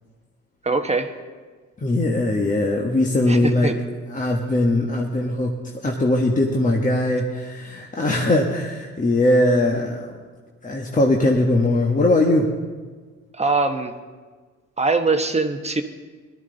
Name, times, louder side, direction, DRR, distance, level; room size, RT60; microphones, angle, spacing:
voice 1, 0.6-1.1 3.3-3.8 13.4-13.9 14.8-15.8, right 3 dB, 20° right, 6 dB, 1.1 m, -22 dB
voice 2, 1.8-3.7 4.1-5.5 5.8-10.1 10.6-12.5, left 1 dB, 25° left, 0 dB, 1.4 m, -20 dB
18.0 x 12.5 x 3.9 m, 1.4 s
cardioid pair, 90°, 30 cm